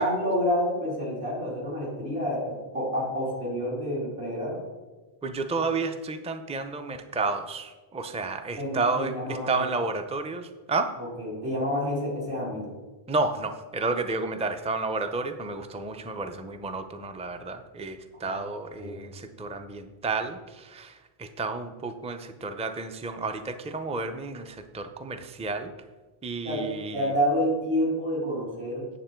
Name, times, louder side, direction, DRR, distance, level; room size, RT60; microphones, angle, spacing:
voice 1, 0.0-4.6 8.6-9.6 11.0-12.7 18.2-18.4 18.8-19.0 26.4-26.7 26.9-28.9, equal, 75° right, -6 dB, 3.3 m, -28 dB
voice 2, 5.2-9.1 9.5-11.0 13.1-25.7 26.2-27.1, right 3 dB, 10° right, 8 dB, 0.3 m, -31 dB
9.1 x 7.3 x 4.5 m, 1.2 s
omnidirectional pair, 1.1 m